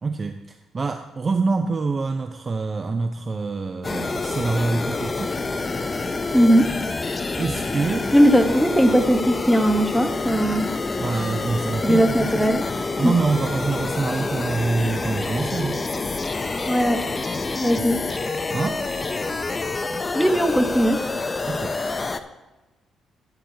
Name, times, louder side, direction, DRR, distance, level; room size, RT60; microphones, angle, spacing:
voice 1, 0.0-5.4 7.4-8.1 11.0-12.3 13.0-15.8 17.8-17.9 18.5-18.8 21.5-21.8, right 4 dB, 35° right, 7 dB, 0.5 m, -26 dB
sound 1, 3.8-22.2, left 3 dB, 25° left, 0.6 m, -27 dB
voice 2, 6.0-6.7 8.1-10.7 11.8-12.7 13.0-13.1 16.6-17.0 17.6-18.0 20.1-21.0, equal, ahead, 5 dB, 1.1 m, -19 dB
14.5 x 9.1 x 2.8 m, 1.1 s
cardioid pair, 90°, 0 cm